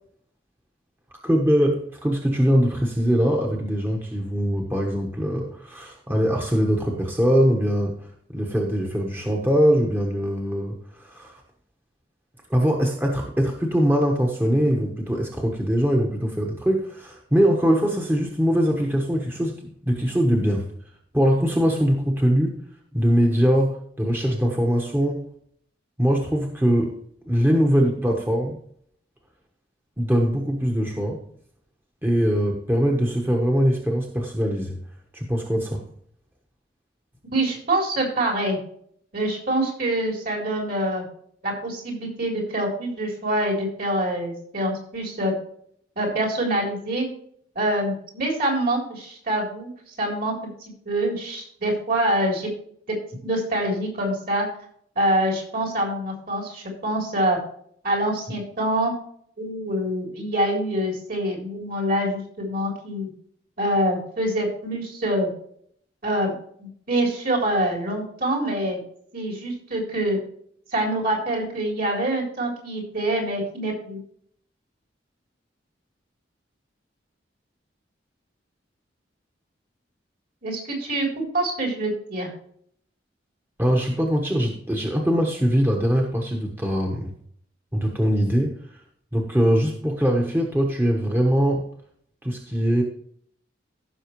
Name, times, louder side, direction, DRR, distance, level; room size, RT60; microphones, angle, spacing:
voice 1, 1.2-11.4 12.5-20.7 21.1-22.6 22.9-25.3 26.0-27.0 27.2-28.6 30.0-31.2 32.0-34.8 35.1-35.9 83.6-87.1 87.7-88.6 89.1-91.7 92.2-92.8, equal, 10° right, 0 dB, 1.2 m, -22 dB
voice 2, 37.3-38.6 39.1-41.0 41.4-45.3 46.0-47.1 47.6-49.7 50.0-50.3 50.8-52.5 53.2-54.5 55.0-57.4 57.8-58.9 59.4-63.1 63.6-65.3 66.0-66.3 66.6-68.8 69.1-70.2 70.7-74.0 80.4-82.3, right 1 dB, 55° right, 0 dB, 3.8 m, -25 dB
15.5 x 6.3 x 3.1 m, 0.63 s
head